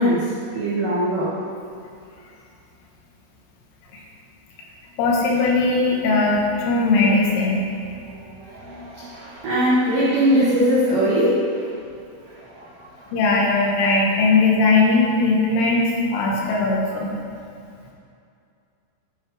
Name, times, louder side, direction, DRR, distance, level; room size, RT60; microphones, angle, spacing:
voice 1, 0.0-1.4 8.1-11.7 12.3-13.0, equal, 80° right, -8 dB, 1.9 m, -21 dB
voice 2, 5.0-7.8 8.6-8.9 13.1-17.2, left 3 dB, 80° left, -2 dB, 3.5 m, -19 dB
10.0 x 5.6 x 4.7 m, 2.4 s
omnidirectional pair, 5.9 m